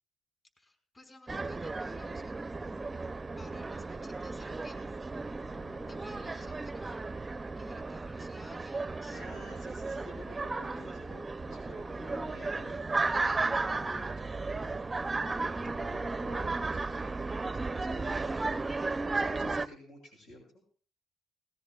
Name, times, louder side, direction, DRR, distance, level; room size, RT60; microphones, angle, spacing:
voice 1, 0.6-2.4 3.4-4.8 5.6-7.1 7.5-9.2, left 2 dB, 30° left, 4 dB, 5.1 m, -55 dB
sound 1, 1.3-19.7, right 3 dB, 20° right, 0.5 m, -34 dB
voice 2, 5.4-6.5 9.1-14.8 15.2-17.2 17.5-18.3 19.1-20.6, left 1 dB, 85° left, 0 dB, 6.0 m, -50 dB
19.5 x 17.5 x 2.4 m, 0.41 s
cardioid pair, 90°, 0 cm